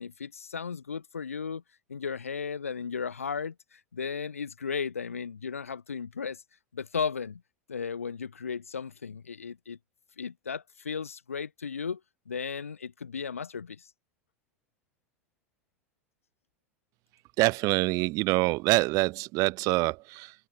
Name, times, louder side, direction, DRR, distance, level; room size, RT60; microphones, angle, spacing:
voice 1, 0.0-1.6 1.9-6.4 6.7-7.4 7.7-9.8 10.2-12.0 12.3-13.9, left 6 dB, 80° left, 6.3 m, -35 dB
voice 2, 17.4-20.3, right 23 dB, 50° right, 3.3 m, -25 dB
figure-of-eight pair, 80°, 7 cm